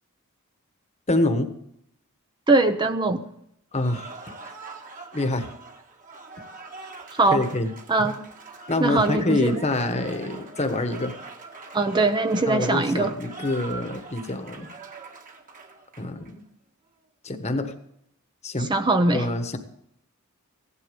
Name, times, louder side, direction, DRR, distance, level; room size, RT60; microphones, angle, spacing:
voice 1, 1.1-1.5 3.7-4.1 5.1-5.5 7.3-7.7 8.7-11.1 12.5-14.7 16.0-16.4 17.2-17.7 18.4-18.7 19.1-19.6, left 2 dB, 30° left, 8 dB, 1.3 m, -26 dB
voice 2, 2.5-3.3 7.1-7.4 7.9-8.2 8.8-9.6 11.7-13.1 18.6-19.3, right 2 dB, 20° right, 8 dB, 0.6 m, -21 dB
Cheering / Applause, 3.7-16.3, right 3 dB, 35° right, 1.7 m, -42 dB
16.5 x 11.5 x 5.2 m, 0.73 s
head